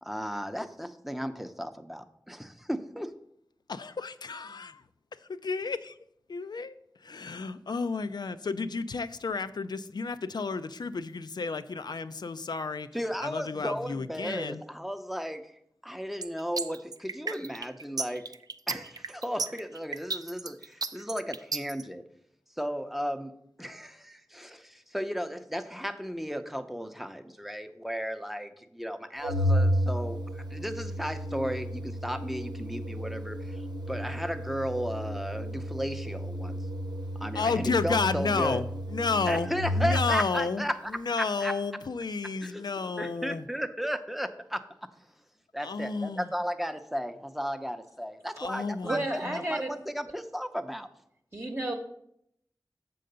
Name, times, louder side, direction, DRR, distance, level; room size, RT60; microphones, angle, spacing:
voice 1, 0.0-3.1 12.9-15.5 15.8-18.2 18.7-22.0 22.6-23.3 23.6-36.7 37.2-38.6 39.3-40.9 41.2-41.5 42.4-42.6 43.0-44.6 45.5-50.9, equal, 5° right, 8 dB, 0.6 m, -35 dB
voice 2, 3.7-4.8 5.2-6.0 6.3-6.8 7.0-12.9 13.2-14.6 37.3-40.6 40.9-43.4 45.6-46.3 48.4-49.4, left 4 dB, 80° left, 12 dB, 0.4 m, -32 dB
sound 1, 16.2-21.8, right 4 dB, 60° right, 0.4 m, -33 dB
Organ, 29.2-40.2, equal, 80° right, 0.9 m, -32 dB
voice 3, 48.8-49.7 51.3-51.7, right 1 dB, 35° right, 1 dB, 0.9 m, -31 dB
7.5 x 3.9 x 6.7 m, 0.74 s
wide cardioid pair, 50°, 7 cm